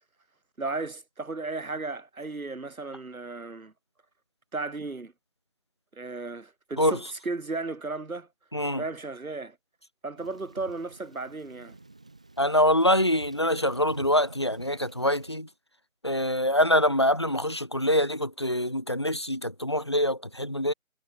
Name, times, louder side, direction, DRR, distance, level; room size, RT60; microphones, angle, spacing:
voice 1, 0.6-3.7 4.5-5.1 5.9-8.3 8.8-9.6 10.0-11.8, right 3 dB, 85° right, 3.2 m, -35 dB
voice 2, 8.5-8.8 12.4-15.5 16.0-20.7, left 1 dB, 20° left, 0.9 m, -24 dB
Thunder / Rain, 10.2-15.4, right 2 dB, 5° right, 1.1 m, -48 dB
figure-of-eight pair, 170°, 41 cm